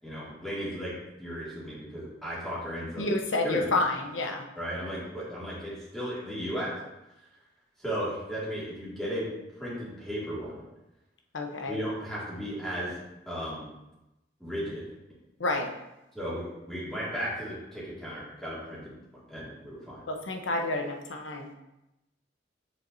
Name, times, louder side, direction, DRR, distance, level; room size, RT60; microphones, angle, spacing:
voice 1, 0.0-0.9 1.2-3.1 3.4-3.7 4.5-6.8 7.8-9.3 9.6-10.6 11.7-12.9 13.3-13.7 14.4-14.8 16.1-19.0 19.3-20.0, equal, 5° left, -9 dB, 2.2 m, -35 dB
voice 2, 3.0-4.4 11.3-11.8 15.4-15.7 20.1-21.5, left 2 dB, 90° left, 3 dB, 0.9 m, -29 dB
7.3 x 6.6 x 2.7 m, 0.94 s
head